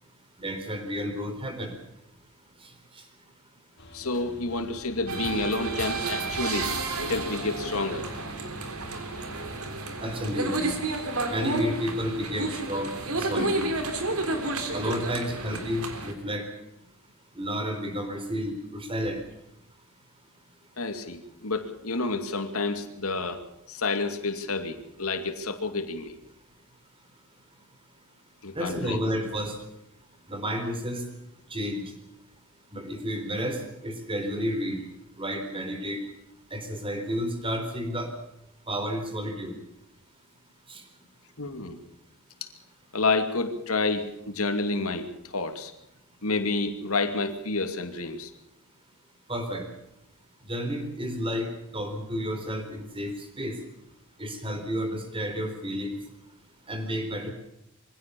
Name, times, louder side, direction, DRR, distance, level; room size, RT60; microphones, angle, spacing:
voice 1, 0.4-1.7 3.0-3.1 10.0-10.7 11.3-13.7 14.7-16.5 17.4-19.2 28.5-29.6 30.3-31.0 31.5-31.8 32.7-34.8 35.1-36.0 36.5-38.1 38.7-39.6 40.7-40.8 49.3-49.7 50.5-51.5 51.7-53.6 54.2-56.0 56.7-57.3, equal, 25° right, 6 dB, 4.1 m, -31 dB
sound 1, 3.8-9.7, left 1 dB, 50° left, 3.1 m, -48 dB
voice 2, 3.9-6.7 7.1-8.1 13.4-13.5 20.8-26.2 28.4-29.0 41.4-41.8 42.4-42.5 42.9-45.7 46.2-48.3, left 3 dB, 75° left, 7 dB, 2.6 m, -29 dB
sound 2, 5.1-16.1, right 2 dB, 80° right, 3.6 m, -31 dB
23.5 x 16.5 x 7.0 m, 0.81 s
head